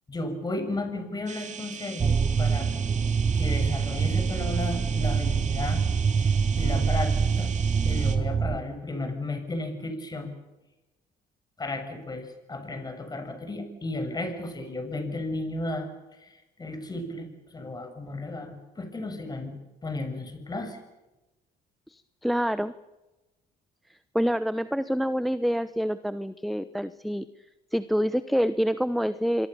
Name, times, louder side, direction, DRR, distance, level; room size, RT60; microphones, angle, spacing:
voice 1, 0.1-2.7 3.3-5.8 6.1-7.5 7.8-10.3 11.6-15.9 16.2-19.6 19.8-20.8, left 2 dB, 25° left, 7 dB, 7.3 m, -34 dB
sound 1, 1.3-8.2, right 6 dB, 45° right, 3.6 m, -40 dB
sound 2, 2.0-8.6, right 6 dB, 30° right, 1.4 m, -25 dB
voice 2, 21.9-22.7 24.1-27.2 27.7-29.5, equal, ahead, 13 dB, 1.0 m, -27 dB
27.0 x 23.0 x 7.0 m, 1.0 s
cardioid pair, 110°, 17 cm